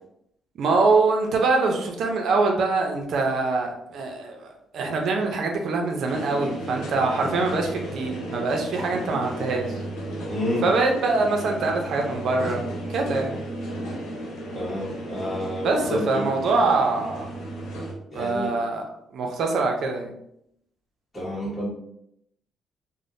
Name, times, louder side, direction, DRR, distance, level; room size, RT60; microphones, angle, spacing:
voice 1, 0.6-9.8 10.6-12.6 12.9-13.4 15.6-17.3 18.1-20.1, right 3 dB, 70° right, 2 dB, 0.5 m, -24 dB
sound 1, 6.1-17.9, right 1 dB, 90° left, 0.9 m, -34 dB
voice 2, 10.3-10.6 14.5-16.0 18.1-18.5 21.1-21.7, equal, 20° left, -9 dB, 1.1 m, -29 dB
3.3 x 2.1 x 2.6 m, 0.76 s
cardioid pair, 90°, 0 cm